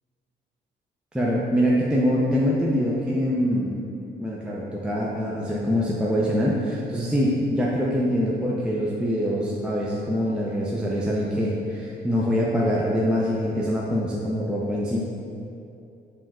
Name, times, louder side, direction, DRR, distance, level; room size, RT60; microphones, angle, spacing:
voice 1, 1.1-3.8 4.2-15.0, equal, 5° right, -5 dB, 0.4 m, -24 dB
4.3 x 2.3 x 3.6 m, 2.7 s
cardioid pair, 70°, 20 cm